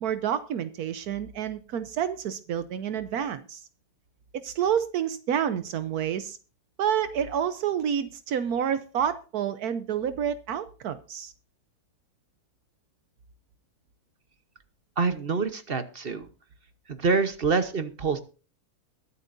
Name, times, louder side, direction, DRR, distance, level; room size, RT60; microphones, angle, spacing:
voice 1, 0.0-3.6 4.3-6.4 6.8-11.3, right 9 dB, 80° right, 12 dB, 1.3 m, -29 dB
voice 2, 15.0-16.3 16.9-18.2, right 4 dB, 40° right, 11 dB, 1.1 m, -26 dB
22.5 x 8.2 x 2.6 m, 0.35 s
omnidirectional pair, 1.6 m